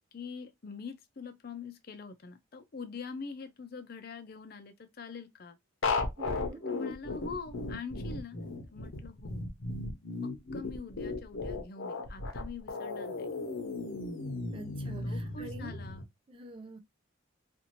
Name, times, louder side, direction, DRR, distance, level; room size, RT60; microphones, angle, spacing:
voice 1, 0.0-5.6 6.7-8.4 8.7-9.4 10.2-13.3 15.0-16.1, left 4 dB, 45° left, 0.5 m, -44 dB
sound 1, 5.8-16.0, left 3 dB, 75° left, 0.7 m, -35 dB
voice 2, 6.2-6.7 14.5-15.8 16.3-16.8, right 2 dB, 25° right, 0.3 m, -46 dB
2.6 x 2.5 x 2.8 m
head